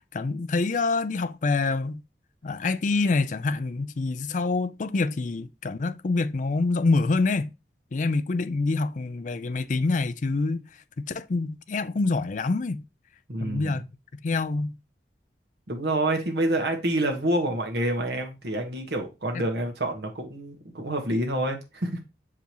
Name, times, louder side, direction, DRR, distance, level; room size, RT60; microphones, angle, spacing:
voice 1, 0.1-2.0 2.4-7.5 7.9-10.6 11.0-12.8 13.4-13.8 14.2-14.8, left 3 dB, 45° left, 0.4 m, -26 dB
voice 2, 13.3-13.7 15.7-22.0, right 1 dB, 65° right, 1.4 m, -27 dB
6.7 x 4.9 x 3.0 m
head